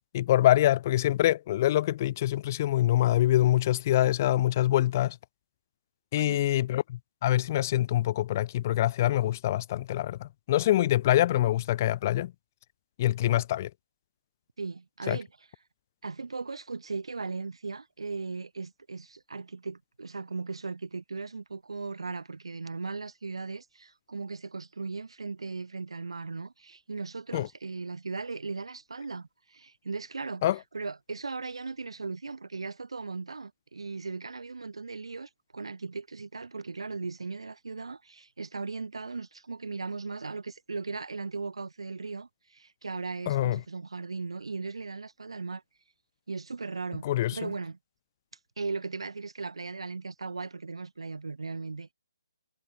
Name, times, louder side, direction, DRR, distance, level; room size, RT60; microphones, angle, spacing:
voice 1, 0.1-5.2 6.1-12.3 13.0-13.7 15.1-15.2 27.3-27.5 30.4-30.6 43.3-43.6 47.0-47.5, left 13 dB, 35° left, 0.8 m, -25 dB
voice 2, 6.2-6.5 14.6-15.3 16.0-30.5 30.7-45.6 46.3-47.8 48.6-51.9, right 4 dB, 80° right, 3.9 m, -37 dB
hypercardioid pair, 155°, 3 cm